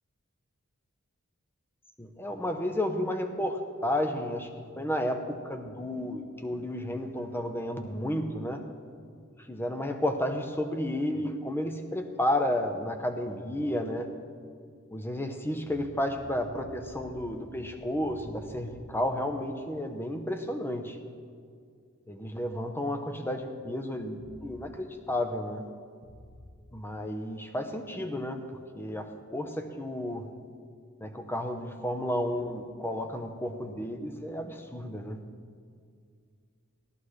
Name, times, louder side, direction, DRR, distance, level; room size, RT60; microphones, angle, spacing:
voice 1, 2.0-8.6 9.4-14.1 14.9-21.0 22.1-25.7 26.7-30.3 31.0-35.2, left 1 dB, 10° left, 6 dB, 0.8 m, -32 dB
sound 1, 15.6-18.9 24.2-24.7 26.0-26.5, equal, 70° left, 1.1 m, -48 dB
16.5 x 13.0 x 3.2 m, 2.2 s
head